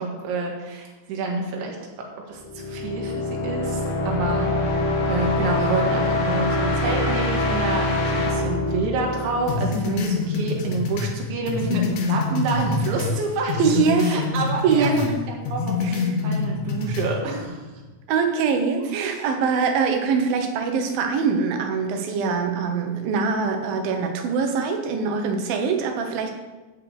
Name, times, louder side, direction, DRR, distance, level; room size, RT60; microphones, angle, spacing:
voice 1, 0.0-1.8 2.3-14.9 15.3-17.7 19.0-19.3, right 3 dB, 85° right, -1 dB, 3.9 m, -28 dB
sound 1, 2.4-10.1, left 2 dB, 60° left, 3.2 m, -24 dB
sound 2, 9.5-13.2 13.5-15.1 15.4-17.1, left 4 dB, 85° left, 1.6 m, -26 dB
voice 2, 13.6-14.3 14.6-15.2 15.8-16.0 18.1-26.3, right 5 dB, 70° right, 4 dB, 2.4 m, -23 dB
10.5 x 4.7 x 8.1 m, 1.2 s
omnidirectional pair, 5.2 m